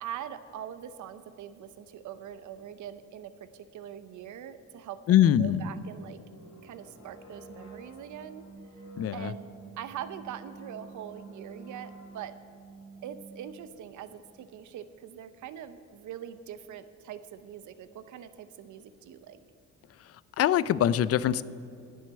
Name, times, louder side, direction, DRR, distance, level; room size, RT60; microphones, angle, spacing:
voice 1, 0.0-6.2 6.6-8.5 9.1-12.3 13.0-19.4, right 10 dB, 75° right, 12 dB, 0.8 m, -43 dB
voice 2, 5.1-5.6 9.0-9.3 20.4-21.4, left 11 dB, 50° left, 18 dB, 0.5 m, -23 dB
sound 1, 5.5-14.3, right 3 dB, 80° left, 3.3 m, -49 dB
10.5 x 6.5 x 8.6 m, 2.7 s
cardioid pair, 90°, 30 cm